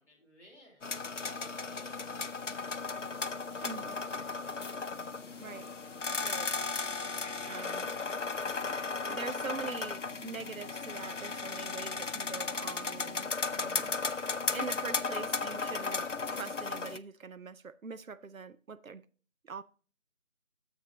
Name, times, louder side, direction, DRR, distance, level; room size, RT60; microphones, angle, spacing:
voice 1, 0.0-3.0 3.5-4.6 15.1-15.8, left 1 dB, 10° right, 2.5 m, -62 dB
sound 1, 0.8-17.0, left 4 dB, 65° left, 0.6 m, -35 dB
voice 2, 3.6-4.0 5.4-5.7 6.2-6.5 7.5-7.9 9.1-13.9 14.5-16.1 16.3-19.1 19.4-19.6, right 5 dB, 85° right, 0.7 m, -43 dB
11.5 x 7.3 x 2.9 m
figure-of-eight pair, 170°, 40 cm